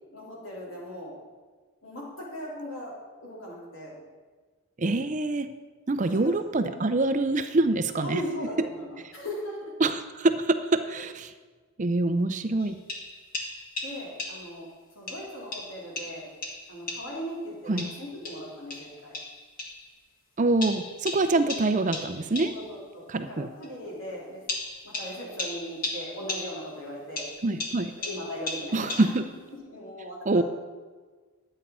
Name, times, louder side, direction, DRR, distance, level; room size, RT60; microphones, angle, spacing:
voice 1, 0.1-1.2 1.8-4.0 6.0-6.3 6.7-6.9 8.0-9.7 13.8-14.7 14.9-16.3 16.7-19.2 22.3-24.4 24.8-27.3 28.0-29.2 29.7-30.4, equal, 65° left, -4 dB, 3.9 m, -38 dB
voice 2, 4.8-5.5 5.9-8.2 9.8-11.3 11.8-12.8 17.7-17.9 20.4-22.5 23.1-23.5 27.4-27.9 28.7-29.2 30.3-30.4, right 2 dB, 35° right, 10 dB, 0.5 m, -25 dB
sound 1, 12.6-14.6 15.1-17.3 17.8-19.9 20.6-22.7 23.6-23.7 24.5-26.8 27.2-29.4, left 2 dB, 40° left, 1.6 m, -37 dB
11.0 x 8.3 x 5.5 m, 1.4 s
head